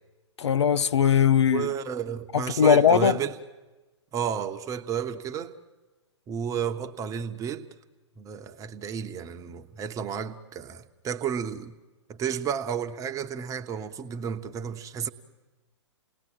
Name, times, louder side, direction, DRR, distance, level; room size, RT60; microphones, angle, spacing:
voice 1, 0.4-1.7 2.3-3.2, left 8 dB, 70° left, 0.7 m, -20 dB
voice 2, 1.5-3.4 4.1-5.6 6.3-7.7 8.2-11.7 12.1-15.1, right 8 dB, 20° right, 1.1 m, -32 dB
29.5 x 19.0 x 7.8 m
figure-of-eight pair, 115°, 15 cm